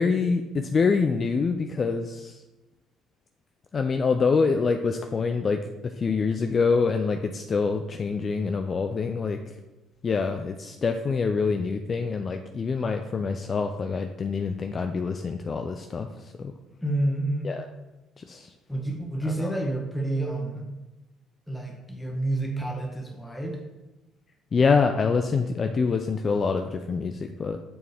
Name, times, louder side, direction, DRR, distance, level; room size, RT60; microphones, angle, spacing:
voice 1, 0.0-2.4 3.7-9.5 10.0-16.5 17.4-17.7 18.2-18.5 19.3-19.5 24.5-27.6, left 5 dB, 40° left, 6 dB, 0.5 m, -26 dB
voice 2, 16.8-17.6 18.7-20.7 21.5-23.6, right 1 dB, 5° left, 1 dB, 1.6 m, -29 dB
6.9 x 6.2 x 3.5 m, 1.1 s
supercardioid pair, 75°, 0 cm